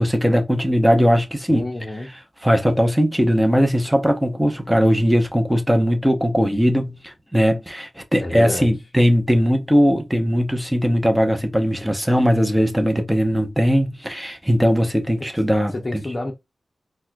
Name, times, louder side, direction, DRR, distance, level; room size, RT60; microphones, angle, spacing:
voice 1, 0.0-1.7 2.4-16.0, equal, 5° right, 0.7 m, -19 dB
voice 2, 1.5-2.2 8.2-8.7 15.7-16.3, left 1 dB, 30° left, 0.6 m, -28 dB
4.2 x 2.2 x 2.3 m
wide cardioid pair, 95°, 0 cm